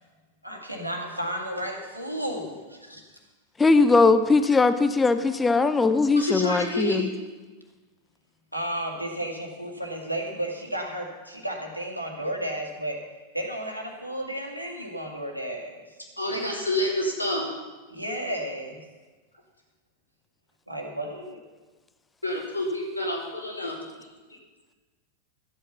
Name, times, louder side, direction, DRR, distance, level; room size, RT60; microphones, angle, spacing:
voice 1, 0.4-2.6 2.9-3.0 8.5-13.0 13.3-15.8 17.9-18.8 20.7-21.4, right 1 dB, 90° right, 0 dB, 2.1 m, -33 dB
voice 2, 3.6-7.1, left 3 dB, 15° left, 11 dB, 0.7 m, -20 dB
voice 3, 6.1-7.0 16.2-17.5 22.2-23.8, left 1 dB, 85° left, -2 dB, 2.9 m, -28 dB
13.0 x 8.8 x 5.6 m, 1.3 s
figure-of-eight pair, 90°, 0 cm